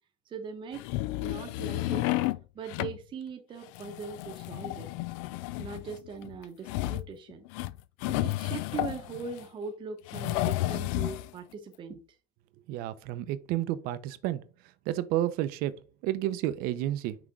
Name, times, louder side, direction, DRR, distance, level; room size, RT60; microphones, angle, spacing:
voice 1, 0.3-0.8 1.2-2.0 2.5-4.9 5.6-7.5 8.1-12.0, right 5 dB, 30° right, 0.8 m, -40 dB
Old Cottage Dresser Drawers Open and Close, 0.7-2.4 2.7-3.0 3.6-9.4 10.1-11.3, left 17 dB, 85° left, 0.4 m, -32 dB
voice 2, 12.7-14.4 14.9-17.2, right 13 dB, 65° right, 0.7 m, -31 dB
6.0 x 3.6 x 4.8 m
cardioid pair, 150°, 17 cm